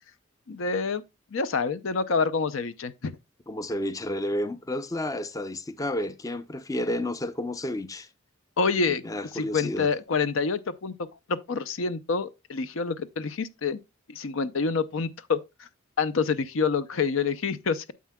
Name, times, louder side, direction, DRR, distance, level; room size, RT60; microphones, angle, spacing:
voice 1, 0.5-1.0 1.3-3.2 8.6-9.0 9.3-11.0 11.3-13.8 14.1-15.7 16.0-17.9, left 4 dB, 70° left, 0.6 m, -27 dB
voice 2, 3.5-8.1 9.0-9.9, left 1 dB, 15° left, 0.5 m, -31 dB
9.3 x 7.4 x 2.2 m
head